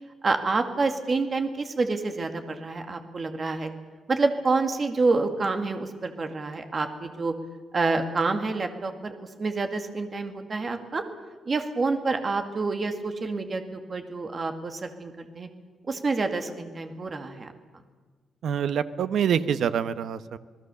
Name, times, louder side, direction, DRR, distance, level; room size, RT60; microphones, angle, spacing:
voice 1, 0.2-3.7 4.1-7.3 7.7-11.0 11.5-15.5 15.9-17.5, right 3 dB, 30° right, 6 dB, 2.1 m, -28 dB
voice 2, 18.4-20.4, right 8 dB, 60° right, 12 dB, 1.0 m, -26 dB
28.0 x 19.5 x 7.0 m, 1.4 s
wide cardioid pair, 170°, 0 cm